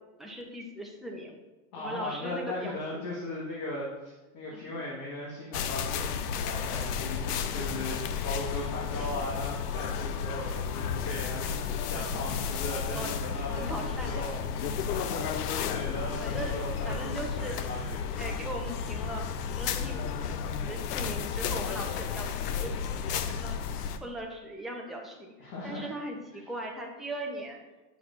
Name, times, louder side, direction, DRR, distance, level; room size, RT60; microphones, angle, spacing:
voice 1, 0.2-1.3 1.8-3.1 4.5-4.7 9.0-9.1 11.4-11.6 12.9-13.2 13.5-14.3 16.2-16.5 16.8-17.5 18.2-20.0 20.7-22.7 23.1-23.6 24.0-27.6, right 1 dB, ahead, -1 dB, 0.7 m, -39 dB
voice 2, 1.7-18.4 25.4-25.9 26.3-26.5, left 2 dB, 45° left, -5 dB, 1.6 m, -38 dB
sound 1, 5.5-24.0, left 6 dB, 80° left, 0.7 m, -32 dB
8.3 x 5.8 x 2.6 m, 1.2 s
supercardioid pair, 130°, 46 cm